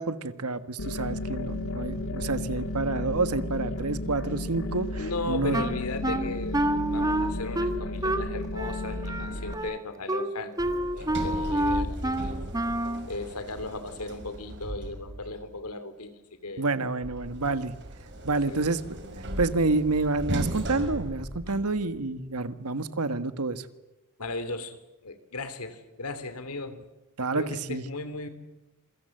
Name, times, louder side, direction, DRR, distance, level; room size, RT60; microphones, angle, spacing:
voice 1, 0.0-5.6 16.6-17.7 18.2-18.8 19.4-23.6 27.2-27.8, right 3 dB, 85° right, 12 dB, 1.5 m, -28 dB
sound 1, 0.8-9.5, left 2 dB, 65° left, 2.2 m, -33 dB
voice 2, 5.0-12.4 13.1-16.7 18.5-18.6 21.5-21.6 24.2-26.8 27.2-28.3, left 2 dB, 80° left, 12 dB, 3.0 m, -37 dB
Wind instrument woodwind instrument, 5.5-13.1, right 1 dB, 15° right, 1.6 m, -29 dB
Sliding door, 10.6-15.4 17.0-22.0, right 1 dB, 55° right, 5.5 m, -36 dB
27.5 x 23.5 x 7.8 m, 0.99 s
head